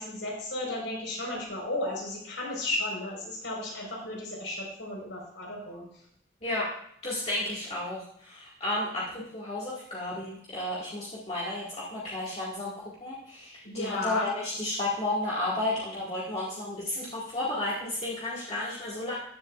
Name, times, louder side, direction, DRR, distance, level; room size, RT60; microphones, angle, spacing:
voice 1, 0.0-5.8 13.6-14.3, left 1 dB, 80° left, -1 dB, 4.7 m, -34 dB
voice 2, 7.0-19.2, left 1 dB, 35° left, -7 dB, 2.1 m, -32 dB
14.5 x 11.0 x 2.5 m, 0.69 s
head